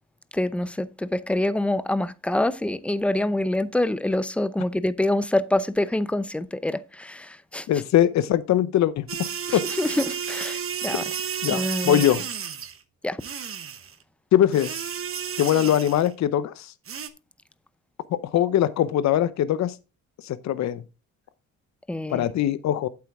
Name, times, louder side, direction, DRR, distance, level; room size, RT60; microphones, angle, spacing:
voice 1, 0.3-7.7 9.5-11.0 11.5-12.0 13.0-13.2 21.9-22.3, left 1 dB, 5° left, 0.6 m, -26 dB
voice 2, 7.7-9.1 9.5-9.6 11.4-12.2 14.3-14.9 15.4-16.7 18.3-19.7 20.2-20.8 22.1-22.9, left 11 dB, 65° left, 0.7 m, -21 dB
sound 1, 9.1-12.8 13.2-13.9 14.5-16.1 16.9-17.1, right 8 dB, 45° right, 1.1 m, -32 dB
8.3 x 7.9 x 3.5 m
cardioid pair, 90°, 30 cm